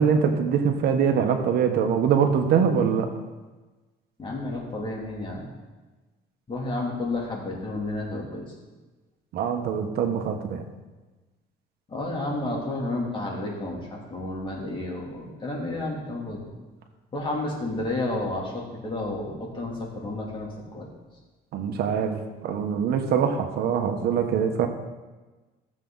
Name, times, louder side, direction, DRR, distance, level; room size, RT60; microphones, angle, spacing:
voice 1, 0.0-3.1 9.3-10.6 21.5-24.7, right 7 dB, 70° right, 6 dB, 1.3 m, -23 dB
voice 2, 4.2-5.5 6.5-8.5 11.9-16.4 17.1-20.5 20.7-20.9, left 2 dB, 30° left, -2 dB, 2.9 m, -31 dB
14.5 x 7.5 x 4.0 m, 1.2 s
cardioid pair, 110°, 17 cm